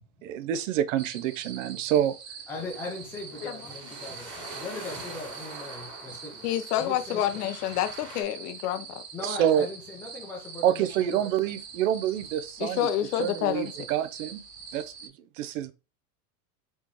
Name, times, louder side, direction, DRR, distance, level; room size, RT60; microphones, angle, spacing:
voice 1, 0.2-2.2 9.2-9.7 10.6-12.9 13.2-14.4 14.7-15.1 15.4-15.7, right 10 dB, 55° right, 0.6 m, -27 dB
sound 1, 1.0-15.1, right 6 dB, 90° right, 1.6 m, -44 dB
voice 2, 2.5-6.5 6.8-7.3 9.1-11.3, left 2 dB, 5° left, 0.6 m, -39 dB
sound 2, 2.6-8.2, right 2 dB, 25° right, 1.5 m, -44 dB
voice 3, 6.4-9.0 12.6-13.7, left 11 dB, 75° left, 0.8 m, -28 dB
4.2 x 3.1 x 3.4 m
supercardioid pair, 170°, 47 cm